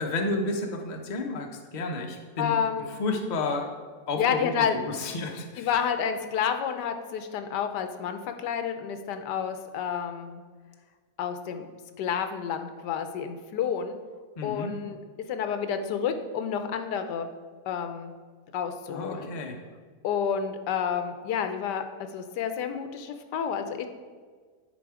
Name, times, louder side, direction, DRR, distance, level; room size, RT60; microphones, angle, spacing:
voice 1, 0.0-2.5 2.9-3.7 4.1-5.7 14.4-14.7 18.9-19.6, left 3 dB, 40° left, 3 dB, 0.6 m, -31 dB
voice 2, 2.4-2.9 4.2-4.8 5.6-10.4 11.2-11.6 12.0-14.0 14.4-15.0 15.3-17.3 17.7-18.1 18.5-19.3 20.0-21.8 22.1-23.9, left 7 dB, 85° left, 8 dB, 1.3 m, -29 dB
10.0 x 4.2 x 4.8 m, 1.5 s
omnidirectional pair, 1.8 m